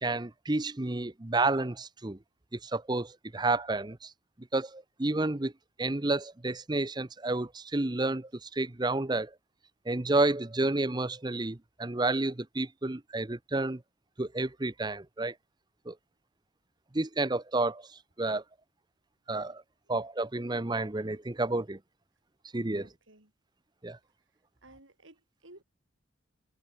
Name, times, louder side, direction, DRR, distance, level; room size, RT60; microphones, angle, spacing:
voice 1, 0.0-2.2 2.6-4.1 4.5-5.5 5.8-9.3 9.9-13.8 14.2-15.3 15.9-16.0 16.9-17.8 18.2-18.4 19.3-19.6 19.9-21.8 22.5-22.9 23.8-24.0, right 2 dB, 20° right, 0.7 m, -30 dB
voice 2, 22.7-23.3 24.6-25.6, right 2 dB, 80° right, 6.3 m, -56 dB
head